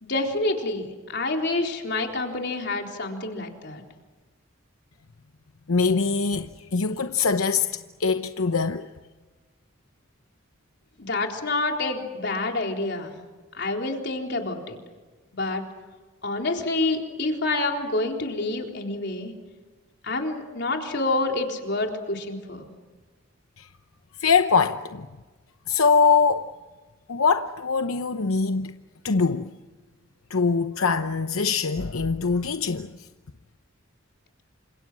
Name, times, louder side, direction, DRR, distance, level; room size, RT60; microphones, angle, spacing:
voice 1, 0.0-3.8 11.0-13.2 13.5-14.8 15.3-15.6 16.2-19.3 20.0-22.7, left 2 dB, 50° left, 3.9 m, -28 dB
voice 2, 5.7-8.9 23.6-23.7 24.2-25.1 25.7-26.5 27.1-28.8 29.0-29.5 30.3-32.9, left 5 dB, 85° left, 0.9 m, -23 dB
29.0 x 26.5 x 6.3 m
head